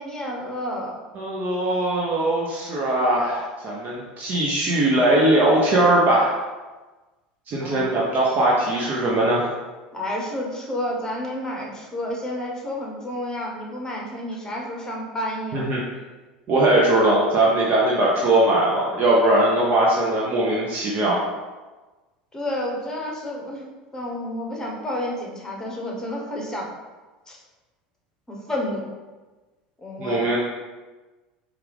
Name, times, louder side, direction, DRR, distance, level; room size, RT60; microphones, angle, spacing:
voice 1, 0.0-1.0 7.6-7.9 9.9-15.7 22.3-23.7 23.9-26.7 27.3-27.4 28.3-28.9 29.8-30.2, left 1 dB, 15° left, -2 dB, 1.1 m, -30 dB
voice 2, 1.1-6.4 7.5-9.5 15.5-15.8 16.5-21.2 30.0-30.4, right 1 dB, 40° right, -4 dB, 0.7 m, -20 dB
4.5 x 2.5 x 3.4 m, 1.2 s
hypercardioid pair, 80°, 4 cm